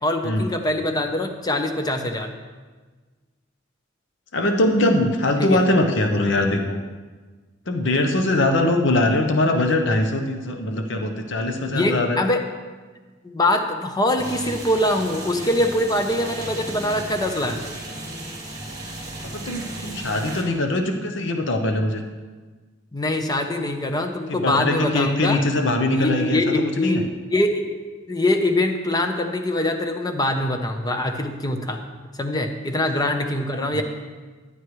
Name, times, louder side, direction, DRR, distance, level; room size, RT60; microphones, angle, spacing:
voice 1, 0.0-2.3 5.4-5.6 11.7-12.4 13.2-17.6 22.9-25.4 25.9-27.0 27.3-27.6 28.1-31.8 32.1-33.8, left 1 dB, 20° left, 5 dB, 0.8 m, -23 dB
voice 2, 4.3-6.8 7.7-12.2 19.2-22.0 24.3-27.0 33.5-33.8, left 1 dB, 65° left, 5 dB, 0.9 m, -22 dB
sound 1, 14.2-20.4, right 1 dB, 20° right, 3.6 m, -35 dB
14.5 x 9.9 x 3.2 m, 1.4 s
head